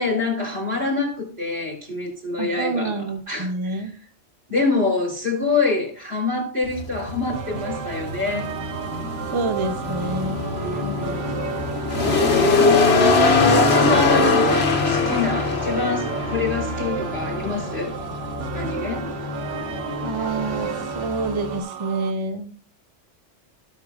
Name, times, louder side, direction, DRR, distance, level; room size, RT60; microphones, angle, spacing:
voice 1, 0.0-3.5 4.5-8.5 10.6-11.2 12.3-12.7 13.4-18.0 18.5-19.0, left 3 dB, 55° right, 3.8 m, -26 dB
voice 2, 2.4-4.0 9.3-10.5 20.0-22.5, right 3 dB, 30° right, 0.6 m, -27 dB
sound 1, 6.6-21.1, left 3 dB, 60° left, 1.3 m, -22 dB
sound 2, 7.3-22.1, right 9 dB, 85° right, 1.0 m, -34 dB
sound 3, 9.8-21.6, left 2 dB, 20° left, 0.9 m, -32 dB
17.0 x 6.2 x 2.4 m
omnidirectional pair, 1.2 m